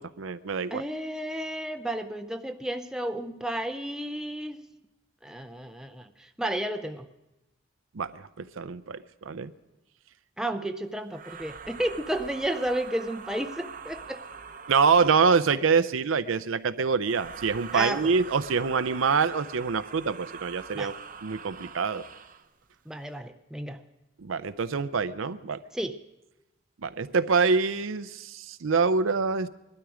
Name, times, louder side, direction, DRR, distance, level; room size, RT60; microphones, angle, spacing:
voice 1, 0.0-0.8 7.9-9.0 9.3-9.5 14.7-20.9 21.2-22.0 24.2-25.6 26.8-29.5, right 5 dB, 80° right, 14 dB, 0.6 m, -25 dB
voice 2, 0.7-4.6 5.2-6.1 6.4-7.1 10.4-14.2 17.7-18.1 20.8-20.9 22.9-23.8 25.7-26.0, right 1 dB, 5° right, 7 dB, 0.4 m, -32 dB
sound 1, 11.1-15.6 17.0-22.5, right 6 dB, 40° right, 0.7 m, -44 dB
20.5 x 12.5 x 5.0 m, 0.98 s
head